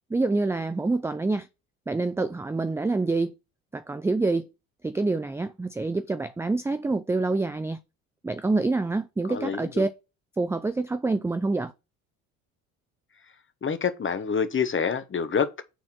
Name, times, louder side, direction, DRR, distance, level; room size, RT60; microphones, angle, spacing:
voice 1, 0.1-1.5 1.9-3.4 3.7-4.5 4.8-7.8 8.2-9.9 10.4-11.7, right 3 dB, 5° right, 0.4 m, -26 dB
voice 2, 9.3-9.9 13.6-15.6, left 6 dB, 30° left, 1.2 m, -27 dB
6.1 x 4.3 x 5.9 m
hypercardioid pair, 60°, 38 cm